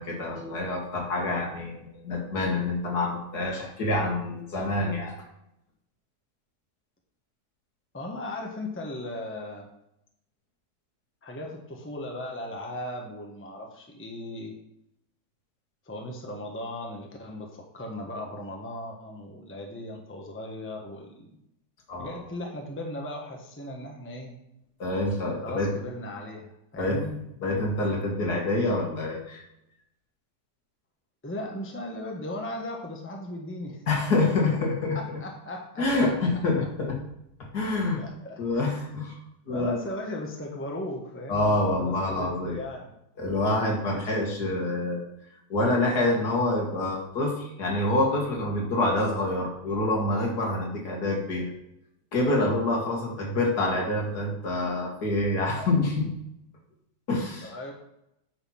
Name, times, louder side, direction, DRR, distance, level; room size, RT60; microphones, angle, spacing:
voice 1, 0.0-5.2 21.9-22.2 24.8-25.7 26.7-27.0 27.4-29.4 33.9-35.0 35.8-37.0 37.5-38.0 38.4-39.2 39.5-39.8 41.3-42.6 43.2-45.1 45.5-51.5 52.1-56.1 57.1-57.5, left 2 dB, 65° left, -1 dB, 2.4 m, -26 dB
voice 2, 7.9-9.7 11.2-14.5 15.8-21.3 22.0-24.3 25.4-27.2 31.2-33.8 34.9-35.9 38.0-39.0 39.5-42.9 57.4-57.7, left 1 dB, 10° left, 1 dB, 1.1 m, -37 dB
9.4 x 4.3 x 5.8 m, 0.81 s
omnidirectional pair, 1.8 m